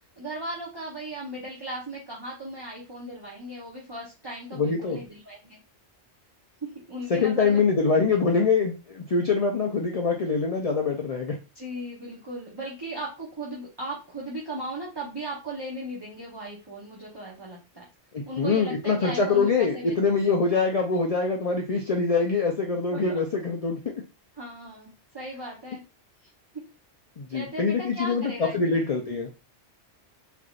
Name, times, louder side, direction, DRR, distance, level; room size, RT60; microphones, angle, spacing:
voice 1, 0.2-5.6 6.6-7.6 11.5-17.8 18.3-20.2 22.9-23.2 24.4-25.8 27.3-29.1, right 1 dB, 25° right, -5 dB, 0.9 m, -37 dB
voice 2, 4.5-5.0 7.1-11.3 18.1-23.8 27.2-29.3, left 4 dB, 45° left, 1 dB, 0.5 m, -24 dB
3.7 x 3.5 x 2.4 m, 0.30 s
omnidirectional pair, 1.1 m